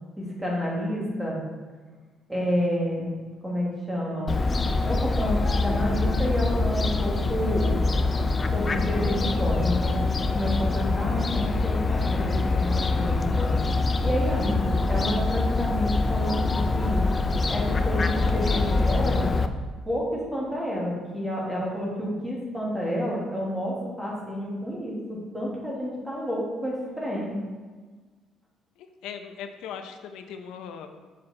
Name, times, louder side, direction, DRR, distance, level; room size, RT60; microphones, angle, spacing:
voice 1, 0.4-1.4 2.3-3.1 3.4-4.3 4.8-5.4 5.6-7.8 8.5-13.6 14.0-17.0 17.5-19.3 19.9-27.4, equal, 5° right, -4 dB, 1.6 m, -29 dB
Fowl, 4.3-19.5, left 3 dB, 20° left, 0.3 m, -24 dB
voice 2, 28.8-30.9, left 7 dB, 85° left, 7 dB, 0.6 m, -39 dB
6.6 x 5.9 x 3.8 m, 1.4 s
cardioid pair, 175°, 0 cm